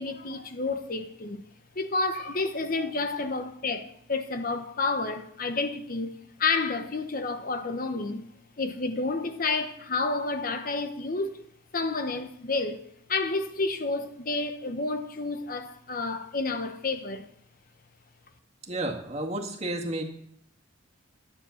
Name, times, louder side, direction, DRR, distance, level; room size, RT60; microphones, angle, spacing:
voice 1, 0.0-1.4 1.7-8.2 8.6-11.4 11.7-17.3, left 3 dB, 45° left, 1.0 m, -30 dB
voice 2, 18.6-20.0, right 1 dB, 30° right, 1.9 m, -31 dB
12.5 x 9.8 x 7.1 m
head